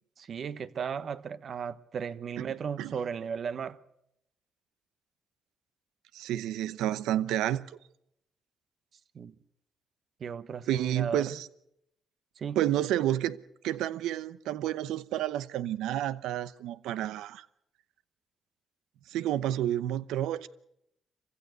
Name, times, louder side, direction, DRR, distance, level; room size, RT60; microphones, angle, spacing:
voice 1, 0.2-3.8 9.1-9.3 10.2-11.2 12.4-12.6, right 7 dB, 55° right, 1.2 m, -35 dB
voice 2, 6.1-7.8 10.7-11.5 12.5-13.4 13.6-17.5 19.1-20.5, right 12 dB, 90° right, 0.8 m, -30 dB
25.0 x 15.5 x 8.3 m
cardioid pair, 90°, 0 cm